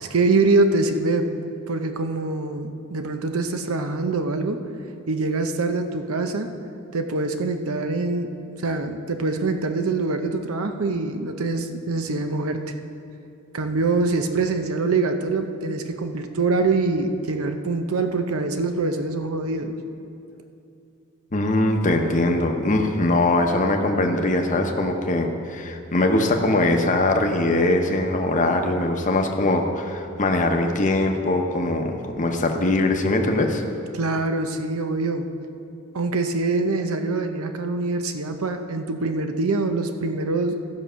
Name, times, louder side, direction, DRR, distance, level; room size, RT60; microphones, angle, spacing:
voice 1, 0.0-1.3 1.7-4.6 5.1-6.5 6.9-8.3 8.6-12.6 13.5-19.8 33.9-35.3 35.9-40.6, right 3 dB, 80° right, 7 dB, 0.7 m, -24 dB
voice 2, 21.3-33.6, left 2 dB, 35° left, 3 dB, 0.8 m, -21 dB
14.5 x 6.2 x 5.6 m, 2.6 s
head